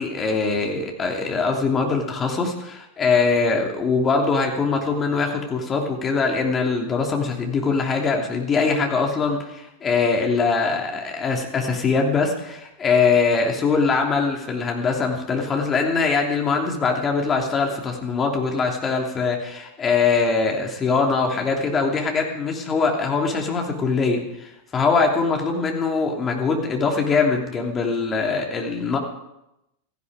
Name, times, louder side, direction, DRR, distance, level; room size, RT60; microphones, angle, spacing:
voice 1, 0.0-29.0, left 4 dB, 20° left, 1 dB, 3.0 m, -22 dB
16.5 x 15.0 x 4.9 m, 0.89 s
figure-of-eight pair, 90°, 0 cm